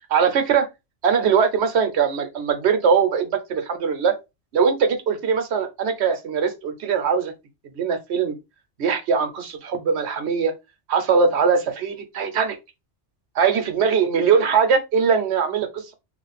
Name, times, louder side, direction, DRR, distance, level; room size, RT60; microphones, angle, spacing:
voice 1, 0.1-0.7 1.0-4.2 4.5-7.3 7.8-8.4 8.8-10.5 10.9-12.6 13.4-15.9, right 6 dB, 65° right, 1.0 m, -21 dB
3.2 x 2.3 x 4.0 m
omnidirectional pair, 1.2 m